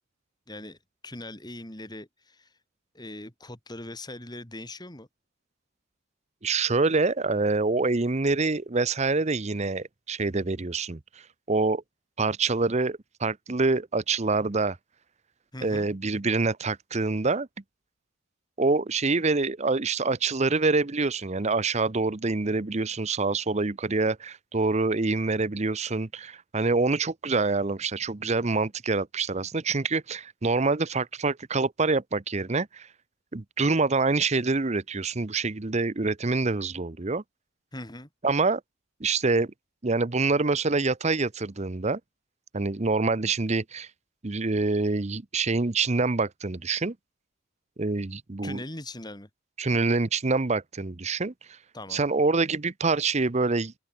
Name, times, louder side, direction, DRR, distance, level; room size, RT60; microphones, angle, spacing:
voice 1, 0.5-0.8 1.0-2.5 2.9-5.1 15.5-15.9 37.7-38.1 48.4-49.3 51.7-52.1, left 1 dB, 20° left, 2.8 m, -40 dB
voice 2, 6.4-11.0 11.5-11.8 12.2-14.8 15.6-17.5 18.6-32.9 33.3-37.2 38.2-38.6 39.0-39.5 39.8-42.0 42.5-43.9 44.2-46.9 47.8-48.6 49.6-51.6 51.9-53.7, right 3 dB, 30° right, 0.7 m, -26 dB
open air
head